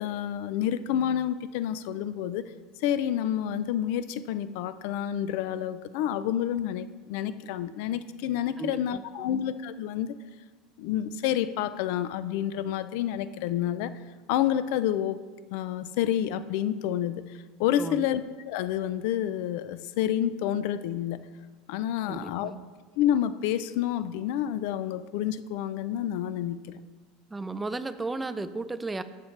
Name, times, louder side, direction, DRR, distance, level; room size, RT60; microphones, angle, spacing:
voice 1, 0.0-2.5 2.8-10.2 10.8-13.9 14.3-15.2 15.5-21.2 21.7-22.5 23.0-26.8, left 10 dB, 70° left, 14 dB, 0.4 m, -29 dB
voice 2, 8.6-9.3 17.8-18.1 22.1-22.6 27.3-29.0, right 3 dB, 10° right, 12 dB, 0.4 m, -34 dB
12.0 x 7.6 x 3.3 m, 1.4 s
supercardioid pair, 135°, 0 cm